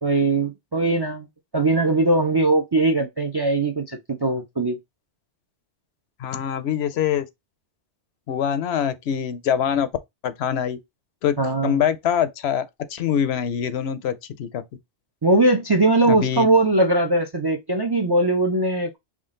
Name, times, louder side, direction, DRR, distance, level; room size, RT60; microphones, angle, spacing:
voice 1, 0.0-1.3 1.5-4.8 11.4-11.8 15.2-19.0, right 2 dB, 35° right, 0.4 m, -20 dB
voice 2, 6.2-7.3 8.3-9.9 10.2-10.8 11.2-11.3 11.6-14.6 16.1-16.5, left 8 dB, 70° left, 0.8 m, -24 dB
3.6 x 2.4 x 3.7 m
omnidirectional pair, 1.1 m